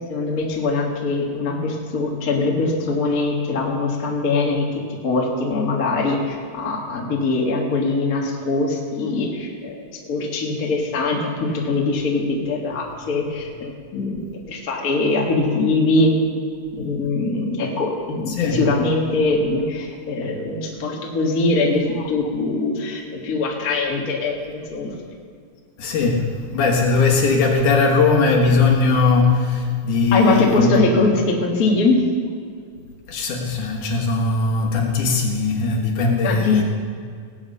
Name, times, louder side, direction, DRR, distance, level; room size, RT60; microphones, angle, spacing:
voice 1, 0.1-9.8 10.1-16.1 16.7-24.9 30.1-32.1 36.2-36.6, left 3 dB, 40° left, -1 dB, 1.2 m, -22 dB
voice 2, 25.8-30.9 33.1-36.6, left 4 dB, 65° left, -1 dB, 2.8 m, -19 dB
18.5 x 8.4 x 5.5 m, 2.1 s
omnidirectional pair, 4.2 m